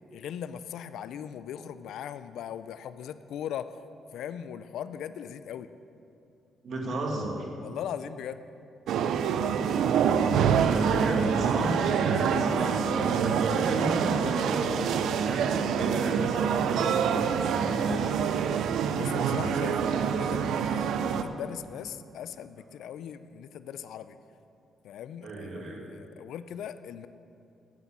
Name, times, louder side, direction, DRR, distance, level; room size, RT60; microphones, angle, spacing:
voice 1, 0.1-3.8 4.1-5.7 7.6-8.4 18.9-24.2 24.8-27.1, left 9 dB, 80° left, 13 dB, 0.5 m, -39 dB
voice 2, 6.6-7.5 9.6-9.8 10.1-18.5 25.2-25.9, right 2 dB, 60° right, 0 dB, 2.3 m, -33 dB
sound 1, 8.9-21.2, right 7 dB, 75° right, 0.6 m, -26 dB
9.5 x 8.2 x 8.6 m, 2.6 s
cardioid pair, 90°, 0 cm